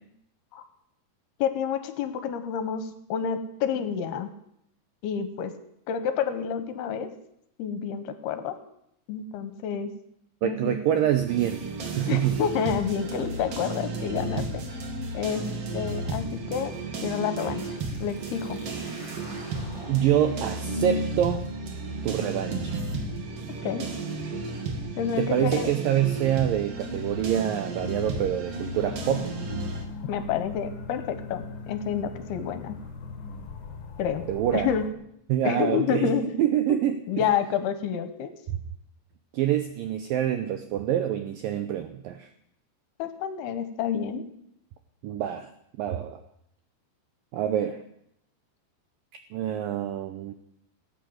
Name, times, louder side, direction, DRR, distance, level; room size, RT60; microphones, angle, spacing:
voice 1, 1.4-4.3 5.0-5.5 5.9-7.1 7.6-8.6 9.1-9.9 10.4-11.0 12.1-14.8 15.1-15.4 15.7-16.7 17.0-17.7 18.0-18.6 23.6-23.9 25.0-25.7 30.0-32.8 34.0-34.2 34.5-34.8 35.4-36.4 36.7-36.8 37.1-38.3 43.0-44.3, left 7 dB, 75° left, 10 dB, 2.8 m, -29 dB
voice 2, 10.4-12.4 19.9-21.5 22.0-22.8 25.2-29.3 34.3-34.7 35.3-36.1 36.4-37.3 39.3-42.3 45.0-45.5 45.8-46.2 47.3-47.8 49.3-50.3, right 11 dB, 80° right, 9 dB, 2.0 m, -26 dB
sound 1, 11.3-29.8, right 2 dB, 50° right, 1.9 m, -33 dB
sound 2, 17.3-24.9, right 1 dB, 35° right, 6.4 m, -50 dB
sound 3, 28.7-34.9, left 4 dB, 55° left, 2.4 m, -40 dB
17.0 x 9.1 x 7.8 m, 0.76 s
omnidirectional pair, 5.0 m